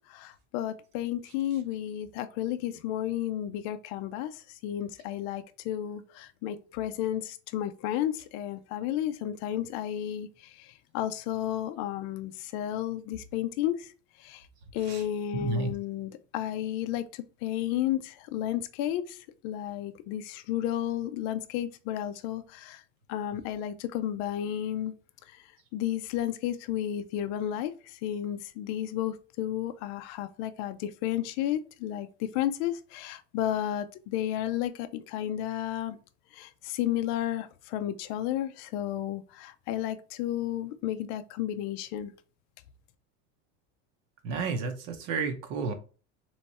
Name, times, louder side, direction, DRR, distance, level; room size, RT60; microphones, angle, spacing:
voice 1, 0.1-13.9 14.2-14.5 14.7-22.8 23.1-24.9 25.3-36.0 36.3-42.1, left 12 dB, 55° left, 0.5 m, -32 dB
voice 2, 15.3-15.7 44.2-45.7, right 4 dB, 55° right, 0.9 m, -31 dB
3.4 x 3.1 x 4.1 m
cardioid pair, 160°, 32 cm